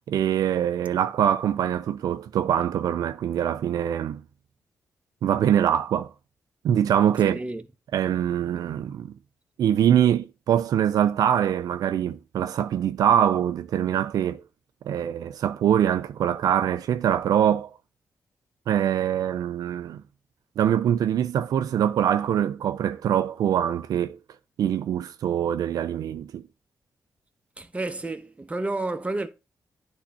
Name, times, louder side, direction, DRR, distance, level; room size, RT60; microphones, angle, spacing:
voice 1, 0.1-4.2 5.2-6.1 6.6-7.4 7.9-9.1 9.6-14.4 14.8-17.7 18.7-20.0 20.6-24.2 24.6-26.4, right 10 dB, 85° right, 0.4 m, -23 dB
voice 2, 7.2-7.6 27.6-29.3, right 2 dB, 20° right, 0.9 m, -30 dB
10.0 x 3.5 x 4.2 m
cardioid pair, 65°, 6 cm